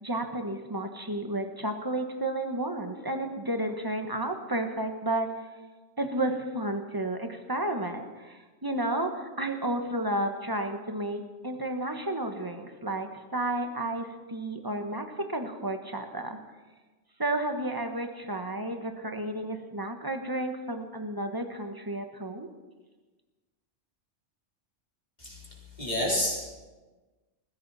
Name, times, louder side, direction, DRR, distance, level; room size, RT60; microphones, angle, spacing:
voice 1, 0.0-5.3 6.0-16.4 17.2-22.5, right 1 dB, 20° right, 5 dB, 1.3 m, -32 dB
voice 2, 25.2-26.5, left 1 dB, 35° left, -4 dB, 4.4 m, -30 dB
20.0 x 15.5 x 4.3 m, 1.3 s
omnidirectional pair, 1.2 m